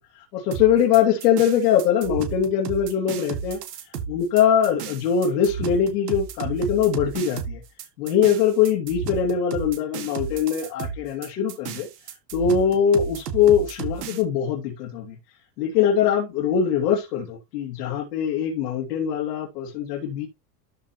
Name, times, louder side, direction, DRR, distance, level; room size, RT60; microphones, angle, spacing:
voice 1, 0.1-7.6 8.0-11.9 12.3-15.2 15.6-20.3, left 8 dB, 85° left, 2.9 m, -22 dB
sound 1, 0.5-14.2, right 7 dB, 90° right, 2.1 m, -33 dB
13.5 x 5.1 x 3.0 m
hypercardioid pair, 100°, 47 cm